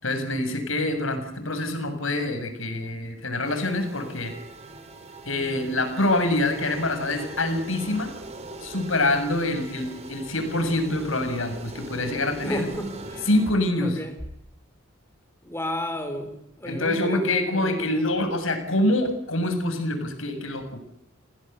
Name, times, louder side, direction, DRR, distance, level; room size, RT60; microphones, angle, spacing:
voice 1, 0.0-4.3 5.3-8.1 8.6-12.7 13.3-14.0 16.7-20.8, left 1 dB, 75° left, 7.2 m, -25 dB
sound 1, 3.4-13.5, right 2 dB, 35° right, 5.1 m, -41 dB
voice 2, 12.4-13.3 13.8-14.2 15.4-18.2, equal, 15° left, 5.0 m, -33 dB
30.0 x 19.5 x 8.2 m
head